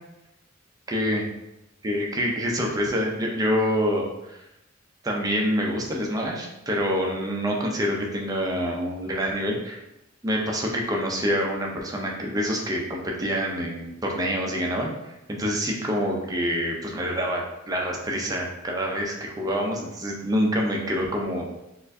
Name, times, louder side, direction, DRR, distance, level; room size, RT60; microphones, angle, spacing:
voice 1, 0.9-1.2 1.8-4.4 5.0-9.8 10.2-21.5, equal, 20° right, 0 dB, 0.5 m, -26 dB
4.2 x 2.5 x 2.6 m, 0.91 s
head